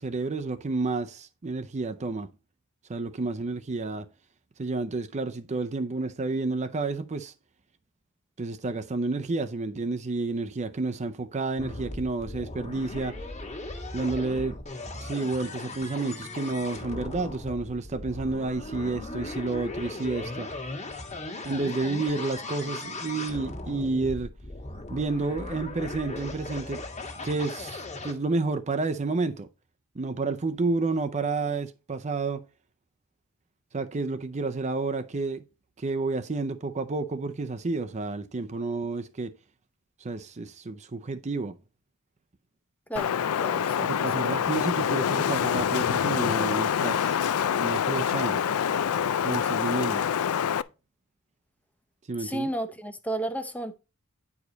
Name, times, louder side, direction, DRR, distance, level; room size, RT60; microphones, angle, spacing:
voice 1, 0.0-2.3 2.9-4.1 4.6-7.3 8.4-13.1 13.9-14.6 15.0-20.5 21.4-24.3 24.9-26.8 27.2-29.5 30.0-32.4 33.7-35.4 35.8-39.3 40.0-41.6 43.8-47.2 47.6-48.4 49.2-50.0 52.1-52.5, right 3 dB, 30° right, 0.5 m, -30 dB
sound 1, 11.6-28.1, left 2 dB, 30° left, 1.6 m, -38 dB
Wind, 43.0-50.6, left 8 dB, 80° left, 0.4 m, -26 dB
voice 2, 43.4-43.9 52.2-53.8, right 1 dB, 5° left, 0.7 m, -32 dB
9.7 x 4.9 x 3.9 m
head